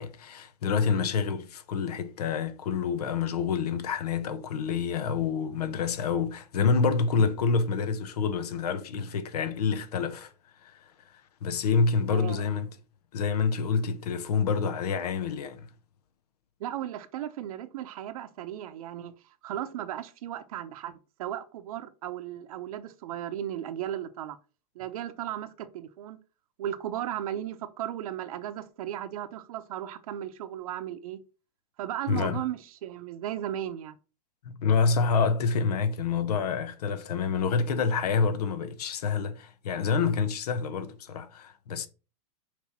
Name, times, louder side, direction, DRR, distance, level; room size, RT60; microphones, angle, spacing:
voice 1, 0.0-10.3 10.6-10.9 11.4-12.7 13.1-15.7 32.1-32.4 34.4-41.9, left 5 dB, 80° left, 1.0 m, -27 dB
voice 2, 12.1-12.4 16.6-24.4 24.7-26.2 26.6-31.2 31.8-34.0, right 11 dB, 65° right, 0.9 m, -36 dB
6.2 x 3.4 x 5.9 m
supercardioid pair, 150°, 20 cm